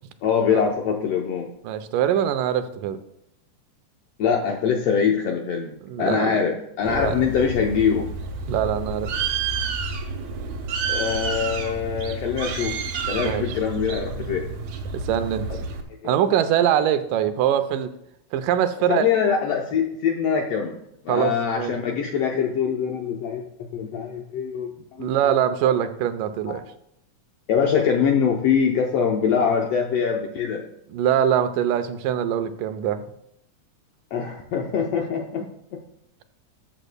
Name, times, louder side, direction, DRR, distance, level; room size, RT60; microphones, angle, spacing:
voice 1, 0.2-1.5 4.2-8.1 10.9-12.8 13.1-14.5 16.0-16.3 18.9-20.8 21.0-24.7 25.0-25.3 26.5-26.6 27.5-30.6 34.1-35.5 35.7-35.8, left 7 dB, 75° left, 2 dB, 1.5 m, -23 dB
voice 2, 1.6-3.0 5.9-6.4 6.9-7.2 8.5-9.1 13.2-13.6 14.9-15.7 16.0-17.9 18.3-19.0 21.1-21.7 25.0-26.6 30.9-33.0, right 10 dB, 85° right, 10 dB, 2.3 m, -23 dB
Bird, 6.9-15.8, right 4 dB, 70° right, 2.2 m, -30 dB
13.0 x 7.4 x 2.2 m, 0.77 s
omnidirectional pair, 3.7 m